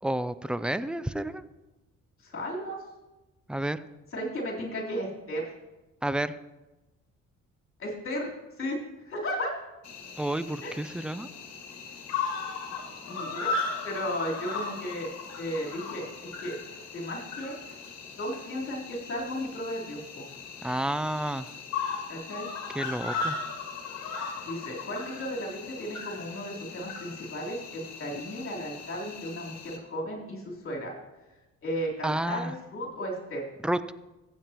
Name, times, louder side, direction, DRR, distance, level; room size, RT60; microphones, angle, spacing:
voice 1, 0.0-1.4 3.5-3.8 6.0-6.4 10.2-11.3 20.6-21.5 22.7-23.4 32.0-32.5 33.6-33.8, right 1 dB, 5° right, 14 dB, 0.3 m, -30 dB
voice 2, 2.2-2.8 4.1-5.5 7.8-8.3 8.6-8.8 9.1-9.5 10.6-10.8 13.0-13.5 13.8-15.1 15.4-16.1 16.4-16.6 16.9-17.5 18.2-20.3 22.1-22.5 24.4-30.9 31.6-33.4, equal, 45° left, -3 dB, 3.6 m, -34 dB
Cricket, 9.8-29.8, left 4 dB, 60° left, 1.9 m, -37 dB
15.0 x 8.4 x 3.0 m, 1.1 s
cardioid pair, 90°, 30 cm